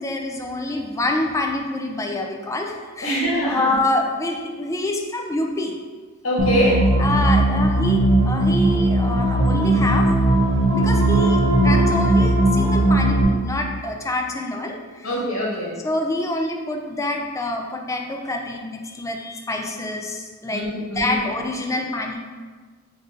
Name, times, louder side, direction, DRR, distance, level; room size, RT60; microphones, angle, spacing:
voice 1, 0.0-5.8 7.0-10.1 10.6-15.1 15.8-20.7 21.0-22.2, left 2 dB, 15° left, 2 dB, 0.3 m, -26 dB
voice 2, 3.0-3.8 6.2-6.9 15.0-15.7 20.5-21.2, equal, 80° left, -4 dB, 1.0 m, -23 dB
sound 1, 6.4-13.2, right 1 dB, 65° right, 0.6 m, -18 dB
3.9 x 2.4 x 3.7 m, 1.5 s
head